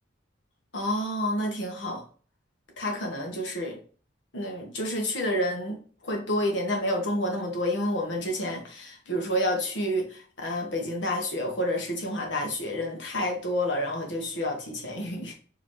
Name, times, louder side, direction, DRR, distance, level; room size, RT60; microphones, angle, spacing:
voice 1, 0.7-2.0 2.8-3.8 4.3-5.8 6.0-15.3, left 1 dB, 70° left, 1 dB, 1.3 m, -29 dB
5.0 x 3.1 x 3.1 m, 0.41 s
head